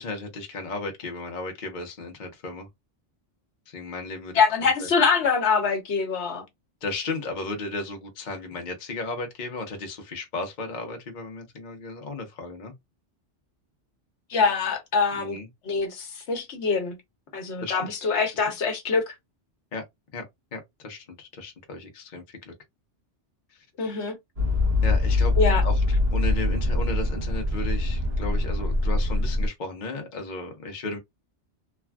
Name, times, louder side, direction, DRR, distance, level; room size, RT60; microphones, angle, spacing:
voice 1, 0.0-2.7 3.7-4.9 6.8-12.7 15.1-15.5 17.6-17.9 19.7-19.8 20.1-20.2 20.5-22.5 24.8-25.3 25.6-25.8 26.1-31.0, left 3 dB, 45° left, 0.9 m, -35 dB
voice 2, 4.3-6.4 14.3-15.4 15.6-17.0 17.3-19.1 23.8-24.2 25.4-25.6, left 5 dB, 70° left, 1.1 m, -24 dB
sound 1, 24.4-29.5, left 2 dB, 60° right, 1.1 m, -23 dB
3.3 x 2.3 x 2.2 m
omnidirectional pair, 1.2 m